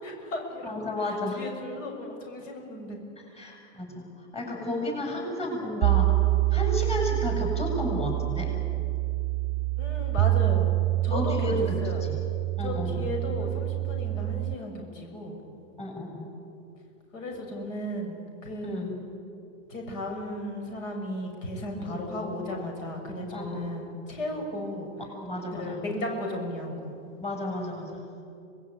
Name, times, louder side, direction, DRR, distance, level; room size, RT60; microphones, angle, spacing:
voice 1, 0.0-0.7 1.0-3.0 4.7-4.8 9.8-10.7 11.0-11.5 11.8-12.0 12.6-15.4 17.1-18.1 18.4-18.9 19.7-24.9 25.6-26.9, left 1 dB, 80° left, 2 dB, 6.8 m, -35 dB
voice 2, 0.6-1.4 3.2-6.1 6.5-8.5 11.1-12.2 12.6-13.1 15.8-16.3 18.6-18.9 21.8-22.0 23.3-23.7 25.1-25.8 27.2-28.1, left 1 dB, 15° left, 2 dB, 7.4 m, -32 dB
sound 1, 5.8-14.5, right 18 dB, 40° right, 0.7 m, -26 dB
25.5 x 20.5 x 9.4 m, 2.6 s
hypercardioid pair, 110°, 38 cm